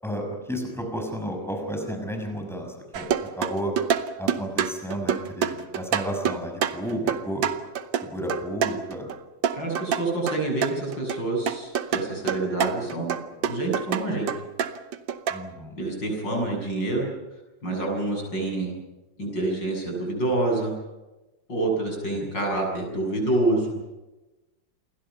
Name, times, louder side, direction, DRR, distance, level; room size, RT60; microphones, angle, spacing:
voice 1, 0.0-3.7 4.2-7.5 8.0-9.1 15.3-15.7 22.1-22.3, equal, ahead, 3 dB, 6.0 m, -32 dB
sound 1, 2.9-9.2 9.4-11.2 11.5-15.4, right 8 dB, 85° right, 1.8 m, -27 dB
voice 2, 9.5-13.2 13.4-14.3 15.8-17.1 17.6-18.8 19.2-20.7 21.5-23.7, right 2 dB, 70° left, 1 dB, 8.4 m, -27 dB
28.5 x 22.5 x 5.8 m, 1.1 s
omnidirectional pair, 2.0 m